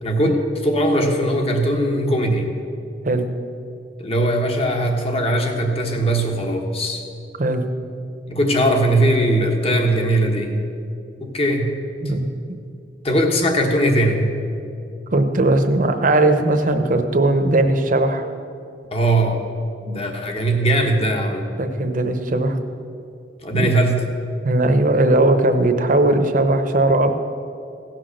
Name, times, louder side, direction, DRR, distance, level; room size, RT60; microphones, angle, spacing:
voice 1, 0.0-2.5 4.0-7.0 8.3-10.6 11.2-11.7 13.0-14.4 18.9-19.4 19.9-21.5 23.4-24.0, right 1 dB, 35° left, 3 dB, 1.3 m, -20 dB
voice 2, 15.1-18.3 19.8-20.0 21.6-22.6 23.5-23.7 24.4-27.1, right 2 dB, 50° right, 7 dB, 0.9 m, -18 dB
16.0 x 6.0 x 6.5 m, 2.5 s
head